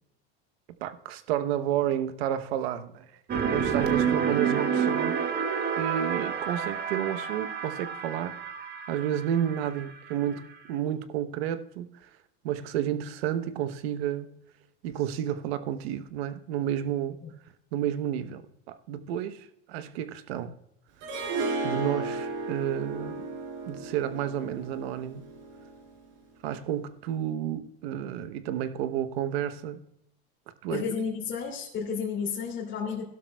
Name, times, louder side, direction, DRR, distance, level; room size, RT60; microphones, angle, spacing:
voice 1, 0.8-3.1 3.3-5.1 5.8-8.3 8.9-12.1 12.4-14.4 14.8-17.2 17.7-20.5 21.6-23.2 23.7-25.2 26.4-29.8 30.6-30.8, right 10 dB, 90° right, 1.0 m, -31 dB
sound 1, 3.3-10.3, right 7 dB, 30° right, 1.2 m, -29 dB
Harp, 21.0-26.1, right 3 dB, 60° right, 4.8 m, -34 dB
voice 2, 30.7-33.0, left 6 dB, 40° left, 2.7 m, -32 dB
16.5 x 12.0 x 2.3 m
supercardioid pair, 120°, 30 cm